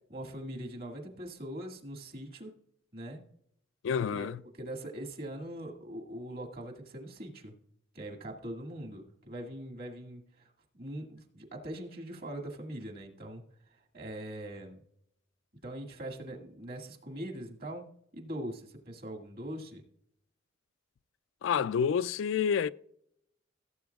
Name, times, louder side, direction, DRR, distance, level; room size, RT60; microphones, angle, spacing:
voice 1, 0.1-2.5 2.9-3.2 4.1-7.5 7.9-14.8 15.6-17.8 18.1-19.8, right 1 dB, 50° right, 2.1 m, -42 dB
voice 2, 3.8-4.4 21.4-22.7, left 7 dB, 65° left, 0.3 m, -28 dB
17.0 x 7.8 x 2.4 m
head